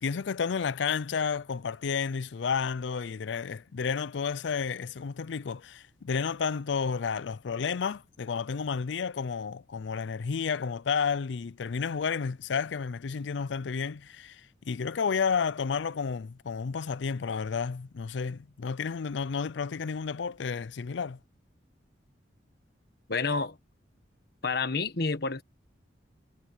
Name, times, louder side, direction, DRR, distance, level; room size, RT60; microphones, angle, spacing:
voice 1, 0.0-21.2, left 6 dB, 75° left, 0.5 m, -31 dB
voice 2, 23.1-23.6 24.4-25.4, left 4 dB, 60° left, 1.4 m, -29 dB
head